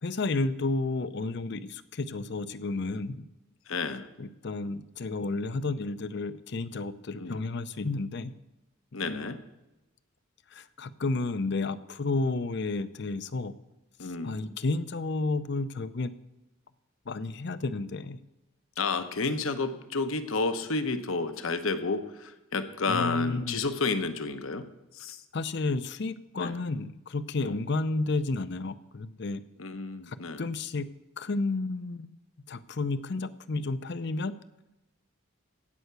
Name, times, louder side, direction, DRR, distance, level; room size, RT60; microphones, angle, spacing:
voice 1, 0.0-3.2 4.2-8.3 8.9-9.2 10.5-13.5 14.2-16.1 17.1-18.2 22.9-23.6 25.3-29.4 30.1-30.9 31.2-32.1 32.5-34.3, left 3 dB, 55° left, 14 dB, 0.6 m, -31 dB
voice 2, 3.7-4.1 7.2-7.5 8.9-9.4 14.0-14.5 18.8-24.6 24.9-25.2 26.4-26.6 27.4-27.6 29.6-30.4, left 3 dB, 70° left, 9 dB, 1.0 m, -31 dB
16.0 x 5.7 x 8.1 m, 0.98 s
head